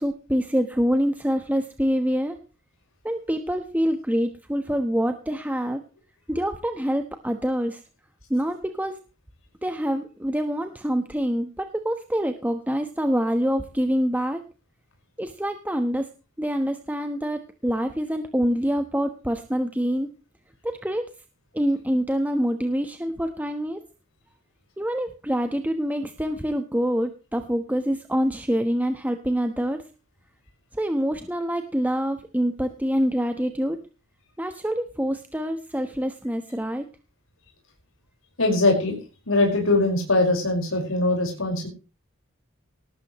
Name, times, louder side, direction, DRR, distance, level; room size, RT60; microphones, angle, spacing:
voice 1, 0.0-2.4 3.0-5.8 6.3-7.8 8.3-9.0 9.6-14.4 15.2-16.1 16.4-20.1 20.6-21.1 21.5-23.8 24.8-29.8 30.7-33.8 34.4-36.9, equal, 10° right, 6 dB, 1.2 m, -26 dB
voice 2, 38.4-39.0 39.3-41.7, left 2 dB, 80° left, 1 dB, 5.4 m, -21 dB
19.0 x 14.0 x 3.2 m, 0.33 s
head